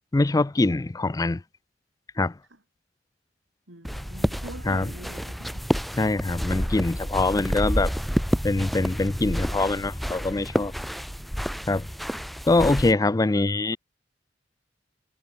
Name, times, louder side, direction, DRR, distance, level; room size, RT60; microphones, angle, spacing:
voice 1, 0.1-1.4 2.2-2.3 4.7-4.9 6.0-7.9 8.4-10.7 11.7-11.9 12.5-13.8, left 2 dB, 20° left, 0.4 m, -23 dB
voice 2, 3.7-5.7, right 1 dB, 85° right, 5.8 m, -44 dB
sound 1, 3.8-12.9, equal, ahead, 3.1 m, -29 dB
head